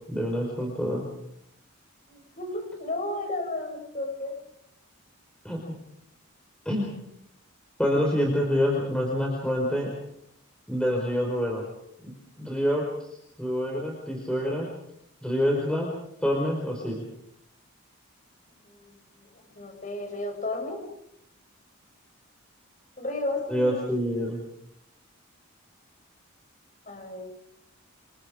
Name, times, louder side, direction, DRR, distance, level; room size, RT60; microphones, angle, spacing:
voice 1, 0.1-1.1 5.4-5.8 6.6-6.9 7.8-10.0 10.7-11.6 12.0-13.1 13.4-14.7 15.2-15.9 16.2-17.0 23.5-24.4, equal, 5° left, 0 dB, 4.8 m, -27 dB
voice 2, 2.1-4.4 15.7-15.9 18.6-20.9 23.0-23.9 26.9-27.3, left 2 dB, 35° left, 4 dB, 7.0 m, -34 dB
29.0 x 27.5 x 5.1 m, 0.77 s
head